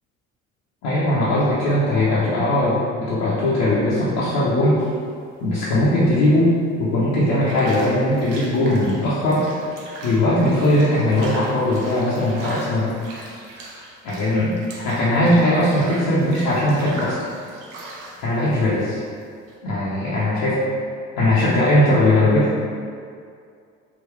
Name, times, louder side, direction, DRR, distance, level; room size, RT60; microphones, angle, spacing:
voice 1, 0.8-4.8 5.4-6.5 6.8-9.5 10.0-12.9 14.0-17.1 18.2-19.0 19.6-20.6 21.2-22.5, left 1 dB, 60° left, -9 dB, 0.8 m, -19 dB
sound 1, 4.8-19.6, right 2 dB, 75° right, 0.8 m, -39 dB
3.7 x 2.6 x 3.1 m, 2.3 s
figure-of-eight pair, 55°, 38 cm